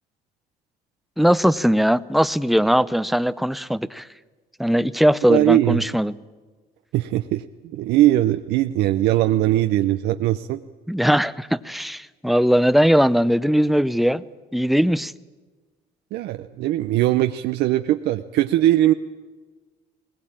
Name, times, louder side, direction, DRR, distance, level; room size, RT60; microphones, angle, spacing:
voice 1, 1.2-4.0 4.6-6.2 10.9-14.2 14.5-15.1, equal, ahead, 16 dB, 0.6 m, -19 dB
voice 2, 5.3-5.8 6.9-7.4 7.7-10.6 16.1-18.9, right 14 dB, 80° right, 8 dB, 0.7 m, -20 dB
20.5 x 19.5 x 8.8 m, 1.4 s
cardioid pair, 110°, 17 cm